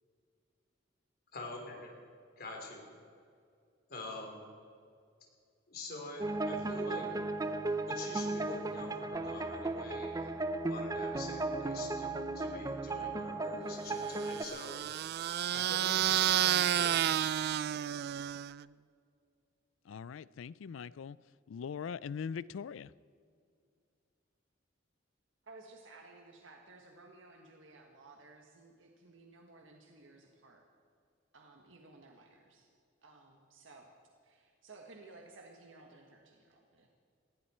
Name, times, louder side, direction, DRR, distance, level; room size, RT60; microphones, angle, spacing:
voice 1, 1.3-1.9 2.4-2.9 3.9-4.4 5.7-7.2 7.9-15.0 15.5-17.0, left 2 dB, 55° left, 3.5 m, -46 dB
sound 1, 6.2-14.5, right 2 dB, 20° right, 0.6 m, -36 dB
sound 2, 14.1-18.6, right 11 dB, 55° right, 0.3 m, -31 dB
voice 2, 19.8-21.2 21.5-22.9, left 6 dB, 85° left, 0.4 m, -41 dB
voice 3, 25.4-30.6 31.3-32.7 33.0-33.9 34.2-36.9, right 3 dB, 85° right, 1.6 m, -56 dB
19.5 x 15.5 x 4.4 m
head